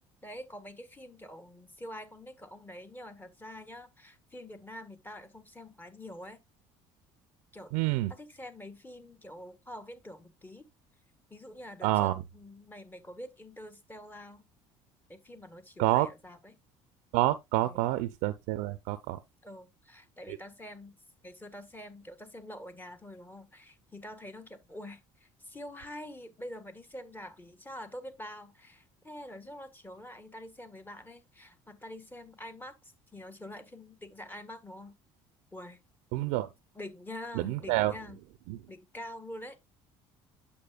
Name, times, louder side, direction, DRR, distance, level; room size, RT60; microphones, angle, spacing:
voice 1, 0.2-6.4 7.5-7.7 8.1-10.7 11.3-14.4 15.1-16.6 17.6-17.9 19.4-20.9 21.2-34.9 35.5-35.8 36.7-38.2 38.7-39.6, left 1 dB, 15° left, 1.6 m, -46 dB
voice 2, 7.7-8.1 11.8-12.1 15.8-16.1 17.1-19.2 20.3-20.4 36.1-36.5 37.3-37.9 38.5-38.6, right 16 dB, 85° right, 0.6 m, -28 dB
8.6 x 7.0 x 2.3 m
supercardioid pair, 95°, 12 cm